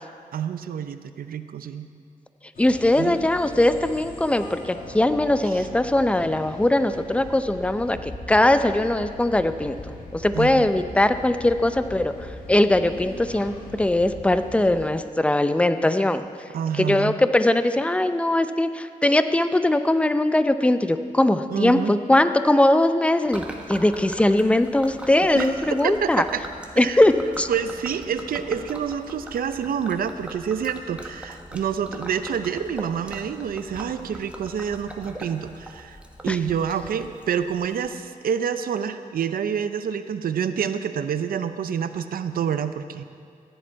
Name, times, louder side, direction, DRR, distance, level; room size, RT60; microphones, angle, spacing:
voice 1, 0.3-1.9 3.0-3.3 5.5-5.6 10.3-10.7 16.5-17.2 21.5-21.9 25.4-26.4 26.8-27.0 27.5-36.0 36.2-43.0, right 7 dB, 90° right, 11 dB, 0.6 m, -28 dB
sound 1, 2.5-14.9, left 2 dB, 80° left, 2.0 m, -40 dB
voice 2, 2.6-16.2 16.7-26.2 26.8-27.5 36.3-36.4, left 1 dB, 10° left, 10 dB, 0.5 m, -21 dB
Gurgling / Liquid, 23.3-37.9, right 1 dB, 10° right, 1.3 m, -41 dB
15.0 x 10.5 x 4.6 m, 2.3 s
cardioid pair, 85°, 15 cm